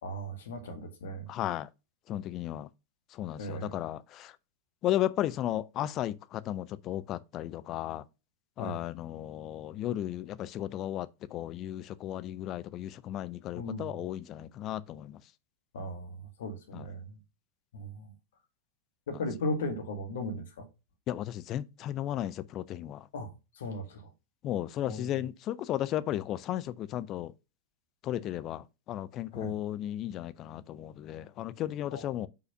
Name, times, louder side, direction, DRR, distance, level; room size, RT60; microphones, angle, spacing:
voice 1, 0.0-1.3 3.4-3.8 8.6-8.8 13.5-13.9 15.7-17.1 17.7-18.1 19.1-20.7 23.1-23.3 23.6-24.0 24.9-25.1 29.3-29.6 31.9-32.1, left 1 dB, 60° left, 1.8 m, -37 dB
voice 2, 1.3-1.7 2.1-2.7 3.1-4.3 4.8-8.0 8.6-15.2 16.7-16.9 21.1-23.0 24.4-27.3 28.0-32.3, left 12 dB, 35° left, 0.5 m, -34 dB
5.7 x 4.0 x 5.4 m
figure-of-eight pair, 90°, 0 cm